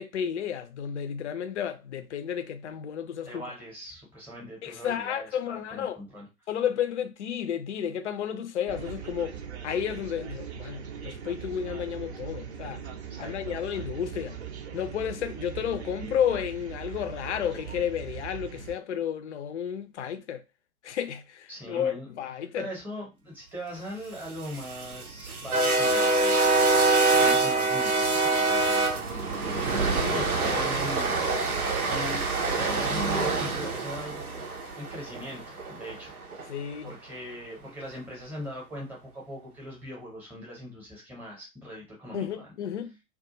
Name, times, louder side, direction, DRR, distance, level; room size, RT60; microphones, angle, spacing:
voice 1, 0.0-3.4 4.6-6.0 6.5-12.8 13.2-14.4 14.7-20.4 20.8-22.7 30.0-30.7 36.5-36.9 42.1-43.0, left 9 dB, 55° left, 0.5 m, -32 dB
voice 2, 3.2-6.3 13.1-13.6 21.5-22.1 22.5-26.4 27.1-29.8 30.1-32.2 32.5-34.4 34.7-36.5 36.8-42.4, equal, 5° right, 0.8 m, -41 dB
sound 1, 8.7-18.8, right 8 dB, 50° right, 0.5 m, -40 dB
sound 2, 24.3-36.4, right 3 dB, 90° right, 0.7 m, -25 dB
2.3 x 2.2 x 2.8 m
figure-of-eight pair, 115°, 42 cm